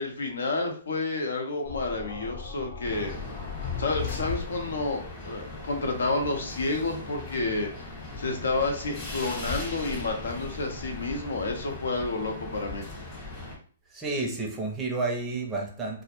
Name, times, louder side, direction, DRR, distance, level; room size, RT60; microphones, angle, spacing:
voice 1, 0.0-3.1 3.8-7.7 8.2-12.9, left 3 dB, 85° left, 2 dB, 0.7 m, -30 dB
sound 1, 1.7-5.0, left 6 dB, 45° left, 0.8 m, -37 dB
sound 2, 2.8-13.6, left 2 dB, 25° left, 1.0 m, -39 dB
voice 2, 13.9-16.0, right 3 dB, 15° right, 1 dB, 0.5 m, -30 dB
2.1 x 2.0 x 2.9 m, 0.44 s
hypercardioid pair, 145°, 0 cm